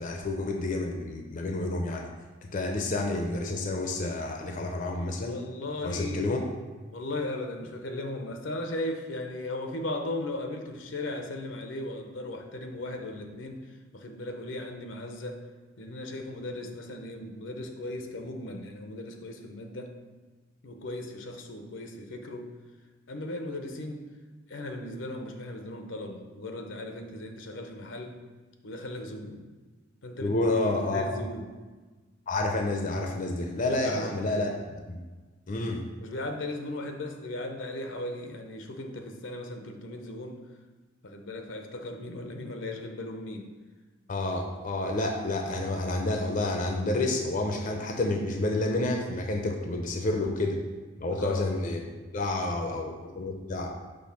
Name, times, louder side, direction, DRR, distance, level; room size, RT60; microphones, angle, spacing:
voice 1, 0.0-2.1 2.5-5.4 5.8-6.5 30.2-31.0 32.3-35.0 35.5-35.8 44.1-50.6 51.0-51.9 52.1-53.7, left 2 dB, 45° left, 2 dB, 0.6 m, -29 dB
voice 2, 5.3-6.3 6.9-15.4 15.8-19.9 20.6-22.5 23.1-24.1 24.5-28.2 28.6-29.5 30.0-30.4 30.9-31.5 33.6-34.1 36.0-40.4 41.0-43.5 51.1-51.5, left 1 dB, 75° left, 4 dB, 0.8 m, -37 dB
6.3 x 3.3 x 5.8 m, 1.3 s
head